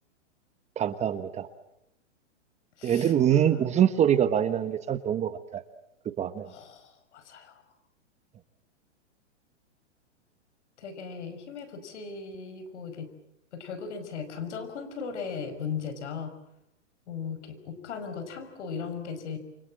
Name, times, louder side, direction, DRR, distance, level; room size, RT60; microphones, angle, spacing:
voice 1, 0.8-1.5 2.8-5.6 6.2-6.5, right 10 dB, 20° right, 12 dB, 1.1 m, -24 dB
voice 2, 2.8-3.6 6.4-7.6 10.8-13.1 13.5-16.3 17.1-19.4, left 6 dB, 70° left, 11 dB, 5.8 m, -37 dB
29.0 x 25.0 x 7.6 m, 0.83 s
hypercardioid pair, 135°, 36 cm